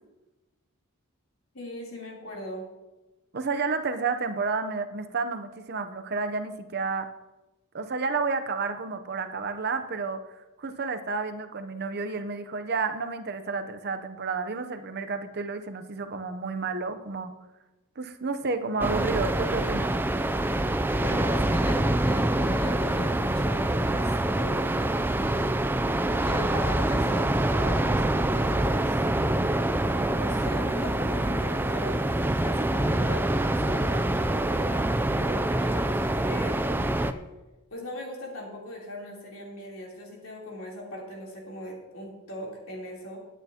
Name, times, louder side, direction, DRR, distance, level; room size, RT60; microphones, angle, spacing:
voice 1, 1.5-2.7 21.0-24.9 26.2-29.0 30.0-32.0 32.3-37.2 37.7-43.2, left 1 dB, 70° left, -2 dB, 3.4 m, -39 dB
voice 2, 3.3-7.1 7.7-10.2 10.6-17.3 18.0-19.9, right 4 dB, 50° right, 9 dB, 0.7 m, -31 dB
sound 1, 18.8-37.1, right 1 dB, 10° right, 0.3 m, -25 dB
18.0 x 9.3 x 2.9 m, 1.1 s
head